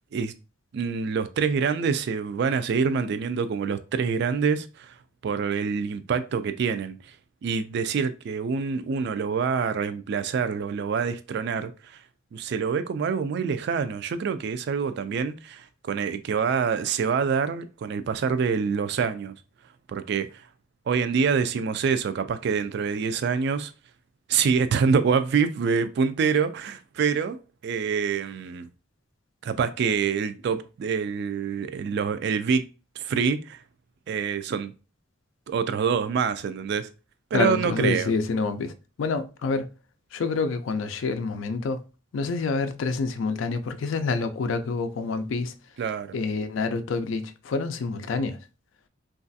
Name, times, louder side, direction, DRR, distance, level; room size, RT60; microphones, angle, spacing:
voice 1, 0.7-4.9 5.2-7.0 7.4-12.0 12.3-19.3 19.9-20.4 20.9-23.7 24.3-28.7 29.4-32.7 33.0-33.6 34.1-34.7 35.5-36.9 37.3-38.1 45.8-46.1, right 6 dB, 60° right, 0.3 m, -26 dB
voice 2, 37.3-39.7 40.1-41.8 42.1-45.5 46.1-48.4, left 4 dB, 75° left, 0.4 m, -27 dB
3.1 x 2.4 x 2.6 m
head